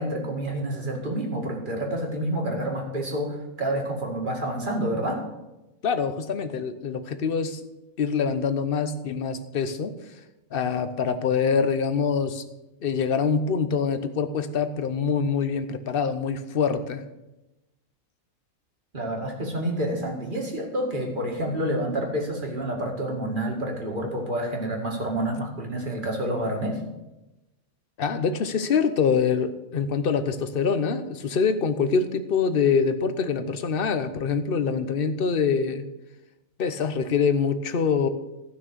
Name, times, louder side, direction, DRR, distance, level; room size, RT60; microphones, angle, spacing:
voice 1, 0.0-5.2 18.9-26.8, right 1 dB, 35° right, 0 dB, 2.3 m, -28 dB
voice 2, 5.8-7.6 8.0-10.2 10.5-12.4 12.8-17.0 28.0-35.8 36.6-38.1, left 6 dB, 45° left, 10 dB, 0.9 m, -25 dB
14.5 x 6.2 x 6.8 m, 1.0 s
omnidirectional pair, 1.5 m